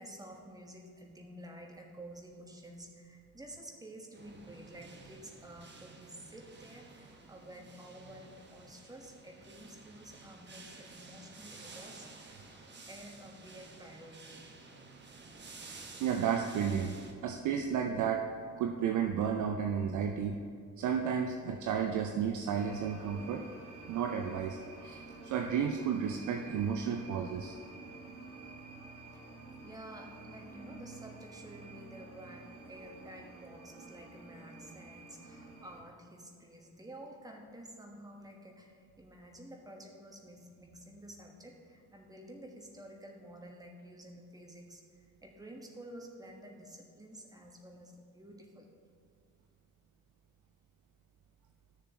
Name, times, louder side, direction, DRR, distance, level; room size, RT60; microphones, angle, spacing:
voice 1, 0.0-12.4 12.9-14.5 29.1-29.2 29.6-44.8 45.2-48.7, right 1 dB, 10° right, 1 dB, 1.2 m, -51 dB
sound 1, 4.1-17.1, right 3 dB, 25° right, 1.0 m, -52 dB
voice 2, 16.0-17.0 17.2-18.3 18.6-20.4 20.8-23.5 23.9-27.6, right 7 dB, 45° right, 4 dB, 0.6 m, -32 dB
sound 2, 22.5-35.8, right 3 dB, 70° right, 1.1 m, -50 dB
12.0 x 6.6 x 2.9 m, 2.1 s
figure-of-eight pair, 45°, 44 cm